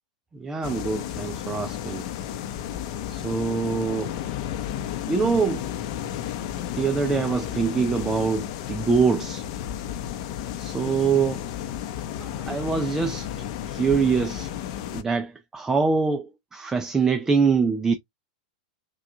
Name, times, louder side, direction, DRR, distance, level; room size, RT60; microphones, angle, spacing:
voice 1, 0.3-2.1 3.1-4.1 5.1-5.7 6.7-9.4 10.6-11.5 12.2-13.3 13.7-14.5 14.9-17.9, right 5 dB, 10° right, 0.4 m, -24 dB
sound 1, 0.6-15.0, left 10 dB, 50° left, 0.7 m, -32 dB
6.1 x 2.4 x 2.7 m
supercardioid pair, 145°, 4 cm